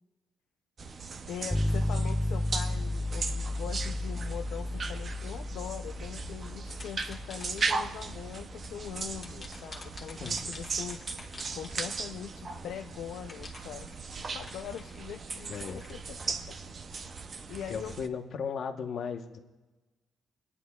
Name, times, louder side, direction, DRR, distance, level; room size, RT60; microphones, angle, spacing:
sound 1, 0.8-18.1, right 4 dB, 45° right, 0.6 m, -38 dB
voice 1, 1.3-13.9 14.3-16.4 16.9-17.1 17.5-18.0, left 9 dB, 80° left, 4 dB, 0.4 m, -42 dB
sound 2, 1.5-11.4, left 1 dB, 5° left, 0.4 m, -34 dB
sound 3, 6.7-8.1 9.2-12.2 13.3-15.9, left 3 dB, 30° left, 1.4 m, -48 dB
voice 2, 15.5-15.8 17.7-19.4, left 6 dB, 60° left, 5 dB, 1.0 m, -36 dB
22.5 x 9.8 x 2.3 m, 1.2 s
cardioid pair, 90°, 0 cm